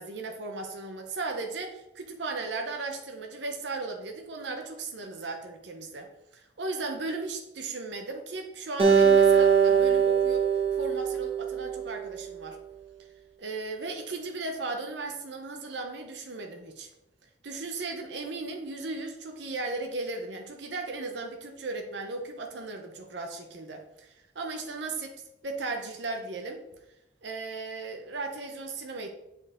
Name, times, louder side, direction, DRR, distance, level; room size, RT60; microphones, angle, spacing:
voice 1, 0.0-10.4 10.7-12.6 13.4-16.9 17.4-25.2 25.4-26.6 27.2-29.1, right 3 dB, 80° right, 4 dB, 0.9 m, -36 dB
Acoustic guitar, 8.8-12.1, right 7 dB, 30° right, 1.3 m, -22 dB
7.5 x 4.8 x 3.6 m, 0.88 s
head